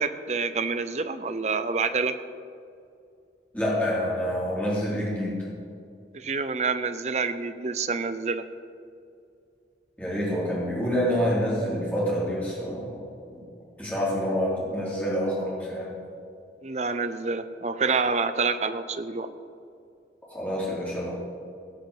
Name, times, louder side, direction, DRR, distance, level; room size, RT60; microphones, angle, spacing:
voice 1, 0.0-2.2 6.1-8.5 16.6-19.3, right 4 dB, 40° right, 10 dB, 0.6 m, -27 dB
voice 2, 3.5-5.4 10.0-13.0 13.3-13.4 13.8-15.9 20.3-21.1, equal, 10° left, -7 dB, 3.6 m, -27 dB
17.0 x 5.8 x 7.3 m, 2.4 s
head